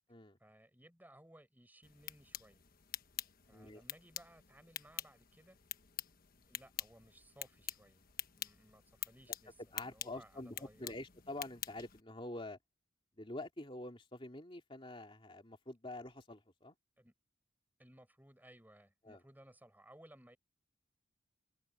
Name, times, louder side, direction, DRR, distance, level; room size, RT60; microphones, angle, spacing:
voice 1, 0.4-2.6 3.5-5.6 6.5-8.0 8.3-11.0 17.0-17.1 17.8-20.4, right 1 dB, 10° right, 4.6 m, -61 dB
sound 1, 1.8-12.0, left 11 dB, 45° left, 1.3 m, -47 dB
voice 2, 3.5-3.8 9.7-12.6 13.1-16.8 19.0-19.2, left 2 dB, 25° left, 2.7 m, -47 dB
open air
head